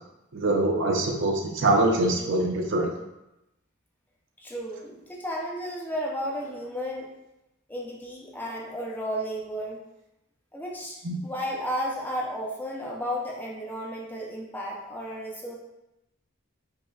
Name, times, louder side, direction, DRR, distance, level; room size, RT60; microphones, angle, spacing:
voice 1, 0.3-2.9 11.0-11.2, right 2 dB, 60° right, 1 dB, 0.5 m, -24 dB
voice 2, 4.4-7.1 7.7-9.8 10.5-15.6, equal, 10° left, -3 dB, 0.5 m, -33 dB
5.3 x 2.2 x 2.3 m, 0.90 s
head